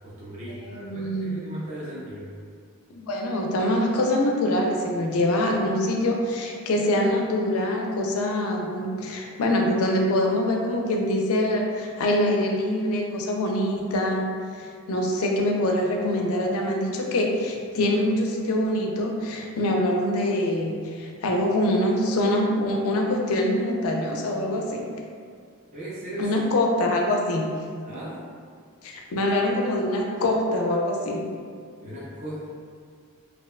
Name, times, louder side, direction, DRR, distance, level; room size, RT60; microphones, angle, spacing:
voice 1, 0.0-2.3 25.7-26.4 27.8-28.2 31.8-32.5, right 1 dB, 35° right, -9 dB, 0.4 m, -37 dB
voice 2, 0.6-1.3 2.9-14.3 14.6-24.9 26.2-27.4 28.8-31.3, left 1 dB, 70° left, 1 dB, 0.4 m, -24 dB
2.7 x 2.1 x 2.3 m, 2.1 s
head